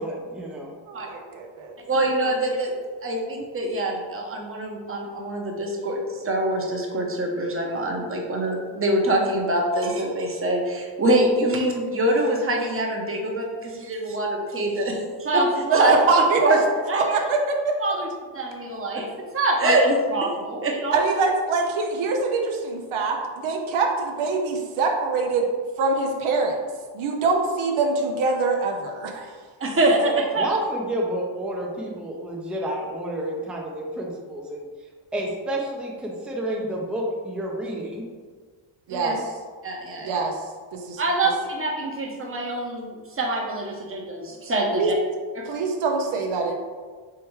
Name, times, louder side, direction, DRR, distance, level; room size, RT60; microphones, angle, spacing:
voice 1, 0.0-0.7 30.4-34.6 35.1-38.1, right 1 dB, ahead, -2 dB, 0.6 m, -30 dB
voice 2, 0.9-1.8 15.7-15.8 16.1-16.4 16.9-17.8 20.9-25.5 25.8-26.6 26.9-29.3 38.9-39.2 40.0-40.3 40.7-41.0 44.7-44.9 45.4-46.6, right 4 dB, 75° right, 2 dB, 0.8 m, -24 dB
voice 3, 1.9-2.7 3.0-15.9 16.4-16.6 16.9-17.1 17.8-18.1 18.3-21.0 29.6-30.6 38.9-39.1 39.6-40.2 41.0-44.9 45.3-45.5, right 2 dB, 25° right, 0 dB, 0.9 m, -24 dB
4.7 x 3.3 x 3.1 m, 1.5 s
cardioid pair, 95°, 49 cm